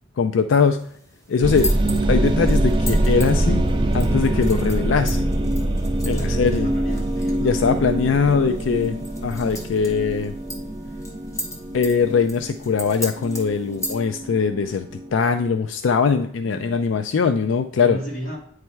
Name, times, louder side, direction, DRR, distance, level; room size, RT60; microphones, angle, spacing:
voice 1, 0.2-0.8 1.3-1.7 2.1-3.6 3.9-5.3 6.0-6.7 7.4-8.9 9.2-10.3 11.7-14.9 15.1-18.0, left 5 dB, 90° left, 8 dB, 0.4 m, -21 dB
sound 1, 0.6-14.0, equal, 15° left, 1.0 m, -38 dB
sound 2, 1.4-15.4, right 1 dB, 25° right, 0.5 m, -24 dB
voice 2, 6.1-8.8 13.6-13.9 16.1-16.9 17.8-18.4, right 1 dB, 45° left, -4 dB, 2.9 m, -36 dB
9.1 x 3.3 x 4.5 m, 0.64 s
head